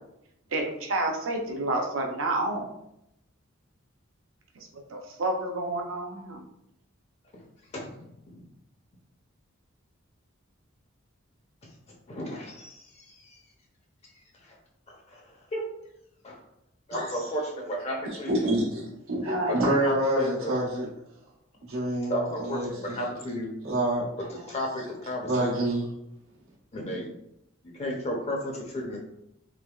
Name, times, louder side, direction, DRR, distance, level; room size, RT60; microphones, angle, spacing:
voice 1, 0.5-2.7 4.6-6.4, right 2 dB, 70° right, 2 dB, 0.6 m, -30 dB
voice 2, 7.7-8.4 12.1-13.4 14.4-14.6 14.9-15.7 16.2-16.4 16.9-18.5 19.5-20.6 22.1-23.5 24.3-25.5 26.7-27.1 27.6-29.0, equal, 30° left, 0 dB, 0.5 m, -34 dB
voice 3, 18.3-20.9 21.7-23.0 23.6-24.1 24.4-24.5 25.2-25.9, right 1 dB, 90° right, -4 dB, 1.1 m, -27 dB
3.3 x 3.1 x 2.3 m, 0.80 s
head